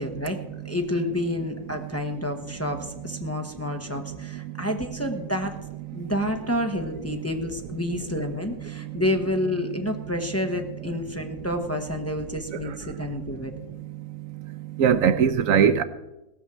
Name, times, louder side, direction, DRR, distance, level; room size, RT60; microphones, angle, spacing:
voice 1, 0.0-0.4 0.6-5.6 5.9-13.5, left 1 dB, 10° left, 1.0 m, -29 dB
voice 2, 3.7-4.7 5.9-6.0 8.6-9.0 12.5-13.1 14.1-14.3 14.8-15.8, right 7 dB, 75° right, 1.1 m, -24 dB
17.5 x 6.3 x 7.4 m
omnidirectional pair, 1.5 m